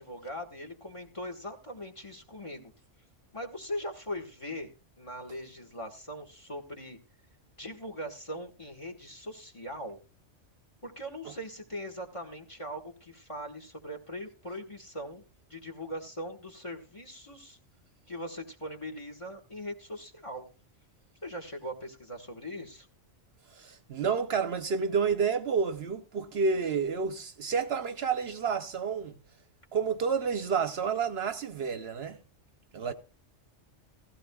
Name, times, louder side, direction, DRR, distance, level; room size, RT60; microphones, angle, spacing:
voice 1, 0.0-2.7 3.3-7.0 7.6-10.0 10.8-15.2 15.5-17.6 18.1-20.4 21.2-22.9, equal, 25° left, 1.5 m, -40 dB
voice 2, 23.5-29.2 29.7-32.2 32.7-32.9, right 5 dB, 60° right, 0.9 m, -30 dB
15.5 x 15.5 x 2.3 m
omnidirectional pair, 1.2 m